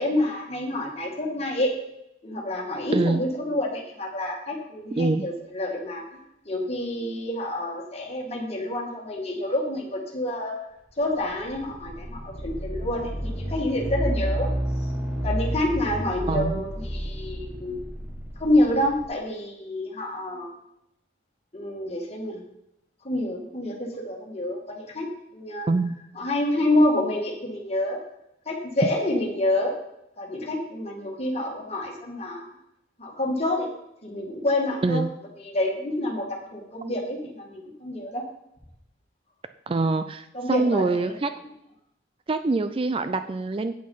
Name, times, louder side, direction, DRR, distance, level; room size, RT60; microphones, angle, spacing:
voice 1, 0.0-1.8 2.2-6.2 6.4-10.6 11.0-14.5 14.8-14.9 15.2-17.8 18.4-20.5 21.5-22.4 23.0-25.7 26.1-28.0 28.5-29.7 30.2-32.4 33.0-33.7 34.0-35.0 35.4-38.2 40.3-41.1, left 1 dB, 30° left, 0 dB, 2.1 m, -28 dB
sound 1, 11.0-19.0, right 1 dB, 10° right, 1.4 m, -30 dB
voice 2, 16.3-16.6 25.7-26.0 34.8-35.1 39.7-41.3 42.3-43.7, right 3 dB, 30° right, 10 dB, 0.3 m, -24 dB
8.6 x 8.3 x 5.6 m, 0.82 s
head